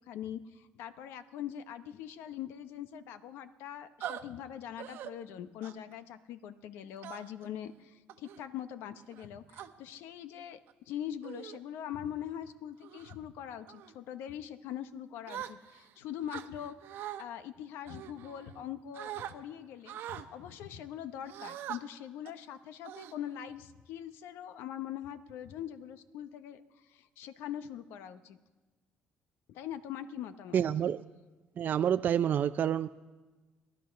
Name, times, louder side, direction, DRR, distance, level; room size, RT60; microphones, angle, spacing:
voice 1, 0.1-10.6 10.9-28.4 29.5-30.6, left 10 dB, 85° left, 11 dB, 0.9 m, -42 dB
sound 1, 4.0-4.2 4.8-5.1 5.6-5.9 7.0-7.5 8.1-8.4 9.1-9.7 10.5-10.7 11.2-11.6 12.1-12.3 12.8-13.1 13.7-13.9 15.3-15.9 16.3-17.2 17.9-18.6 18.9-19.3 19.9-20.3 21.3-21.8 22.3-22.4 22.8-23.5, right 11 dB, 75° right, 0.9 m, -43 dB
voice 2, 30.5-31.0 31.6-32.9, right 9 dB, 55° right, 10 dB, 0.4 m, -28 dB
19.0 x 11.5 x 5.8 m, 1.3 s
cardioid pair, 95°, 4 cm